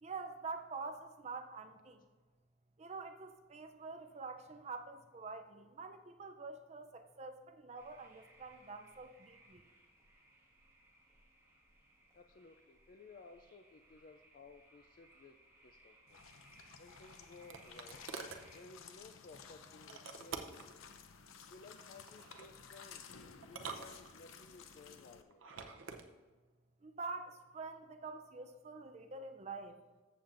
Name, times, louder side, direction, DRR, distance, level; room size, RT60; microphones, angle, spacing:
voice 1, 0.0-2.0 2.8-9.6 26.8-29.8, right 4 dB, 35° right, 7 dB, 0.4 m, -46 dB
sound 1, 7.8-18.6, right 1 dB, 15° right, 1.6 m, -65 dB
voice 2, 12.1-15.4 15.6-16.2 16.8-18.1 18.5-20.9 21.5-23.2 23.4-25.5, left 3 dB, 40° left, 6 dB, 0.3 m, -58 dB
sound 2, 16.1-25.2, left 6 dB, 85° left, 0.7 m, -55 dB
sound 3, 16.7-18.5 19.9-20.7 22.1-22.5 23.4-24.5 25.3-26.1, right 5 dB, 75° right, 0.7 m, -47 dB
14.0 x 7.2 x 2.6 m, 1.3 s
head